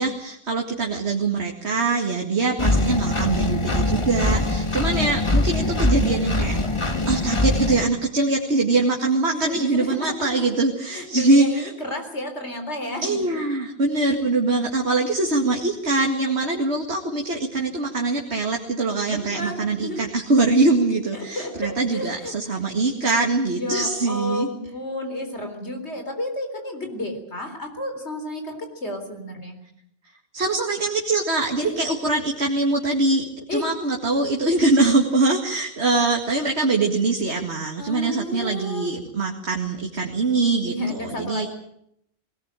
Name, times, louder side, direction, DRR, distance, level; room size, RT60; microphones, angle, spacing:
voice 1, 0.0-6.6 7.0-11.7 13.0-24.5 30.3-33.2 33.5-41.5, right 3 dB, 60° right, 1 dB, 2.4 m, -23 dB
Engine, 2.6-7.8, left 2 dB, 25° left, 1.5 m, -22 dB
voice 2, 9.3-10.5 10.9-13.4 19.1-20.1 21.1-22.3 23.5-29.6 31.6-31.7 33.5-33.7 37.8-38.9 40.6-41.5, left 1 dB, 60° left, 5 dB, 4.2 m, -31 dB
20.5 x 19.0 x 9.0 m, 0.74 s
omnidirectional pair, 1.3 m